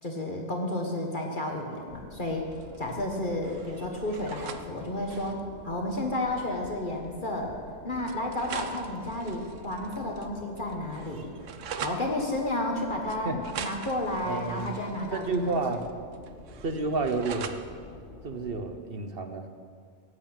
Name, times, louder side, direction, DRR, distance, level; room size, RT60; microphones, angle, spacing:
voice 1, 0.0-2.5 2.8-11.3 11.8-15.6, left 1 dB, 45° left, 1 dB, 1.6 m, -32 dB
sound 1, 1.9-18.8, left 1 dB, 75° left, 2.5 m, -48 dB
sound 2, 2.5-3.2 3.4-4.6 5.0-5.4 6.5-6.6 7.0-7.1 8.1-10.3 10.6-12.0 13.1-15.9 16.1-17.6, right 7 dB, 90° right, 1.2 m, -42 dB
voice 2, 14.2-14.8 15.1-15.9 16.6-17.5 18.2-19.5, right 3 dB, 55° right, 7 dB, 1.2 m, -30 dB
16.0 x 8.2 x 8.8 m, 2.1 s
omnidirectional pair, 1.2 m